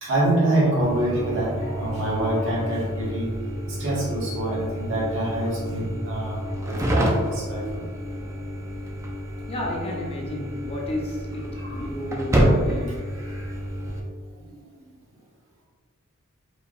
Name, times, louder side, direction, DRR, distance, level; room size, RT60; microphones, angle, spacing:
voice 1, 0.0-3.3 3.7-7.9 10.8-10.9 11.6-11.7 12.8-13.5 14.4-14.9, right 1 dB, 65° right, -6 dB, 1.5 m, -26 dB
sound 1, 0.8-14.0, equal, 15° right, 0.5 m, -28 dB
voice 2, 9.5-13.2, left 1 dB, 30° left, -1 dB, 0.6 m, -32 dB
4.7 x 3.3 x 2.5 m, 1.5 s
head